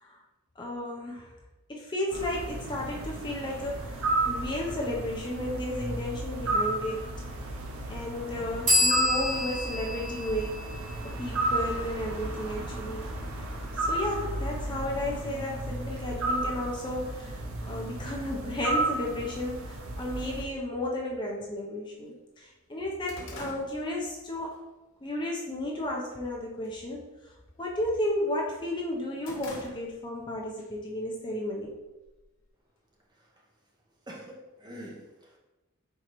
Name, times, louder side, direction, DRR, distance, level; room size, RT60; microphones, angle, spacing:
voice 1, 0.6-1.3 1.7-7.0 7.9-10.6 11.0-13.1 13.9-24.5 25.0-27.0 27.6-31.7, left 1 dB, 20° left, -2 dB, 0.5 m, -33 dB
sound 1, 2.1-20.4, right 2 dB, 85° right, 0.7 m, -33 dB
sound 2, 8.7-12.2, left 2 dB, 40° right, 1.1 m, -29 dB
sound 3, 21.2-21.3 21.8-21.9 22.2-24.6 25.0-25.3 25.7-26.2 26.5-26.8 27.1-28.4 28.8-30.2 30.6-30.7 31.6-32.5, left 2 dB, 70° left, 0.9 m, -46 dB
voice 2, 34.1-35.4, equal, 20° right, -2 dB, 0.7 m, -45 dB
4.6 x 3.8 x 2.9 m, 1.1 s
head